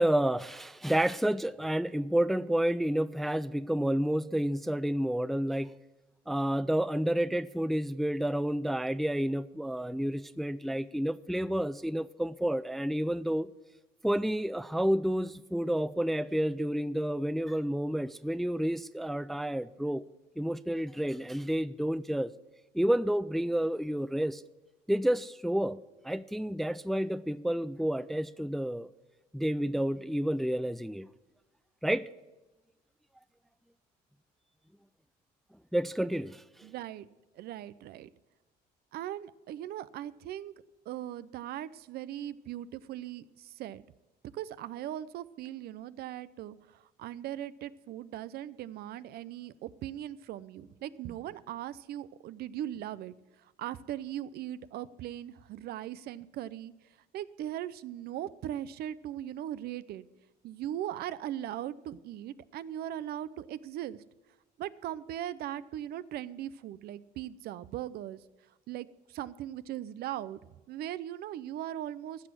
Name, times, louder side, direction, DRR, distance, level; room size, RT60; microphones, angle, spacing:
voice 1, 0.0-5.7 6.3-13.5 14.0-20.0 20.4-22.3 22.7-24.4 24.9-25.8 26.0-28.9 29.3-31.1 31.8-32.1 35.7-36.4, right 1 dB, ahead, 16 dB, 0.3 m, -30 dB
voice 2, 36.6-37.1 37.4-38.1 38.9-40.5 40.9-43.8 44.3-56.7 57.1-60.0 60.4-64.0 64.6-68.2 68.7-70.4 70.7-72.3, right 12 dB, 70° right, 17 dB, 0.5 m, -39 dB
15.0 x 6.3 x 7.5 m, 1.1 s
cardioid pair, 110°, 17 cm